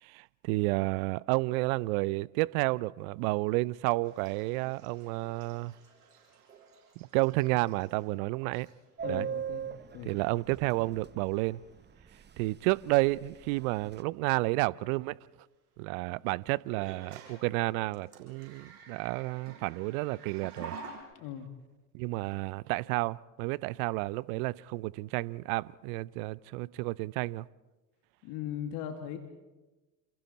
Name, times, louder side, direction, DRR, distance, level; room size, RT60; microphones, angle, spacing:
voice 1, 0.0-5.7 7.1-8.7 9.1-9.3 10.1-11.6 12.4-15.2 15.8-20.8 21.9-27.5, right 22 dB, 65° right, 0.7 m, -31 dB
sound 1, 4.0-8.2 8.5-8.9 9.9-10.0 10.5-10.9 11.2-11.5 13.6-13.7 16.7-21.0, right 5 dB, 85° right, 6.4 m, -50 dB
voice 2, 9.0-9.7 9.9-10.2 21.1-21.5 28.2-29.2, left 10 dB, 60° left, 2.2 m, -39 dB
Subway metro underground, 9.0-11.2 11.4-11.5 11.8-12.0 12.3-12.7 13.0-14.0, right 7 dB, 20° right, 1.0 m, -38 dB
29.0 x 27.5 x 4.2 m
hypercardioid pair, 65°, 46 cm